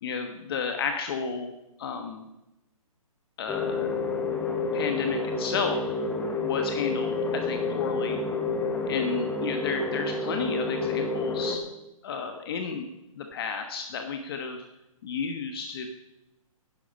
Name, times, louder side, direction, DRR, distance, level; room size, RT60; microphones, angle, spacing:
voice 1, 0.0-1.5 1.8-2.2 3.4-4.0 4.7-5.9 6.4-8.2 8.9-11.6 12.0-12.9 13.2-14.6 15.0-15.9, left 5 dB, 40° left, 5 dB, 1.2 m, -32 dB
sound 1, 3.5-11.6, left 3 dB, 10° left, 1.3 m, -29 dB
11.5 x 10.5 x 5.3 m, 0.93 s
hypercardioid pair, 145°, 18 cm